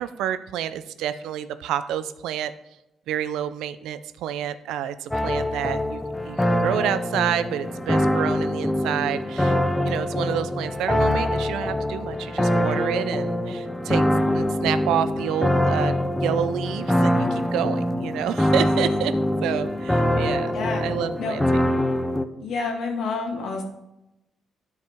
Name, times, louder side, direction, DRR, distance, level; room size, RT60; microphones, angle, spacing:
voice 1, 0.0-2.5 3.1-14.0 14.3-15.9 16.2-19.1 19.4-21.4, right 10 dB, 90° right, 13 dB, 0.4 m, -29 dB
sound 1, 5.1-22.2, left 1 dB, 10° left, 0.6 m, -24 dB
voice 2, 20.5-20.8 21.2-21.4 22.4-23.6, left 4 dB, 70° left, 1 dB, 1.9 m, -28 dB
12.0 x 4.8 x 3.5 m, 0.92 s
cardioid pair, 90°, 0 cm